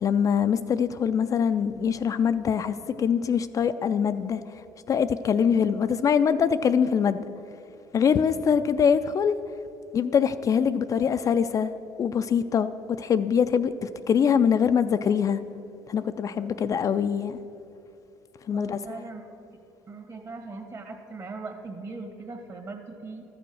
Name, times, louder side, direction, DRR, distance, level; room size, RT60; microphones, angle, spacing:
voice 1, 0.0-4.4 4.9-7.3 7.9-9.4 9.9-11.7 12.0-12.7 13.0-15.4 15.9-17.4 18.5-19.0, left 7 dB, 40° left, 10 dB, 0.4 m, -23 dB
voice 2, 18.5-19.3 19.9-23.2, right 3 dB, 40° right, 3 dB, 1.7 m, -39 dB
12.5 x 6.9 x 6.3 m, 2.7 s
supercardioid pair, 85°, 9 cm